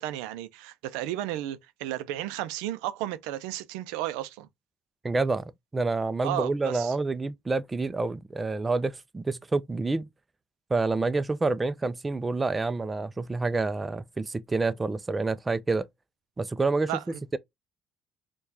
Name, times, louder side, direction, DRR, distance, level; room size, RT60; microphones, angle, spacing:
voice 1, 0.0-4.5 6.2-6.9 16.9-17.2, right 14 dB, 90° right, 0.4 m, -33 dB
voice 2, 5.0-10.1 10.7-15.9 16.4-16.9, right 3 dB, 25° right, 0.4 m, -28 dB
4.5 x 2.3 x 2.6 m
supercardioid pair, 70°, 0 cm